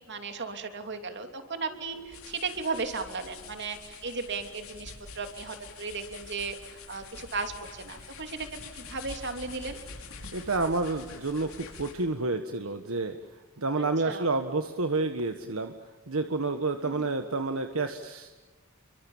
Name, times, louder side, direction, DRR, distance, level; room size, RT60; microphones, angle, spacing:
voice 1, 0.0-8.6 8.9-9.8 13.8-14.3 16.8-17.0, right 4 dB, 55° right, 6 dB, 3.1 m, -36 dB
sound 1, 1.7-12.1, left 4 dB, 85° left, 5.7 m, -46 dB
voice 2, 10.3-13.2 13.6-15.7 16.1-18.3, right 3 dB, 75° right, 7 dB, 1.5 m, -29 dB
29.5 x 24.0 x 7.3 m, 1.3 s
head